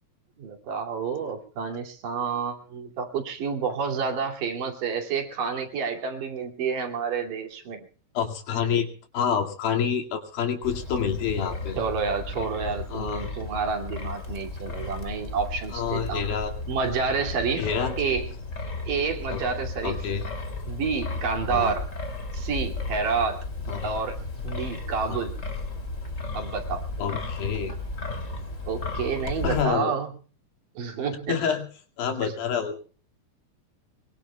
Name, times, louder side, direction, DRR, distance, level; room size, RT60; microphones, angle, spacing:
voice 1, 0.4-7.9 11.8-16.2 16.7-17.7 18.0-18.3 18.9-20.0 20.7-21.9 22.3-23.4 23.8-24.2 24.4-25.3 26.3-26.8 28.6-30.1 30.8-31.4 32.2-32.3, right 5 dB, 70° right, 3 dB, 4.1 m, -29 dB
voice 2, 8.2-11.8 12.9-13.3 15.7-16.5 17.6-18.0 19.3-19.4 19.8-20.3 21.5-21.7 23.7-23.9 25.1-25.3 27.0-27.7 29.4-29.9 31.3-31.7 32.0-32.8, left 7 dB, 90° left, 3 dB, 4.0 m, -28 dB
Wind, 10.6-29.6, left 2 dB, 25° left, 2.6 m, -34 dB
23.5 x 23.0 x 2.3 m, 0.40 s
omnidirectional pair, 4.1 m